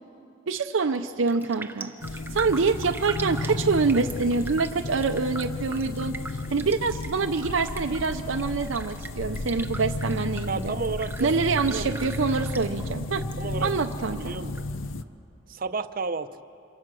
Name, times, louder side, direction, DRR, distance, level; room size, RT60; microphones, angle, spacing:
voice 1, 0.5-6.2 6.5-10.7 11.2-13.3 13.6-14.3, right 4 dB, 85° right, 6 dB, 0.6 m, -26 dB
Raindrop, 0.8-1.0 1.3-13.4 13.6-14.6 15.0-15.1, right 3 dB, 10° right, 0.7 m, -41 dB
sound 1, 2.0-15.0, left 2 dB, 90° left, 0.7 m, -33 dB
voice 2, 10.5-11.3 11.7-12.1 13.4-13.7 14.1-14.6 15.5-16.4, right 4 dB, 45° right, 11 dB, 0.7 m, -32 dB
27.0 x 23.0 x 6.3 m, 2.7 s
head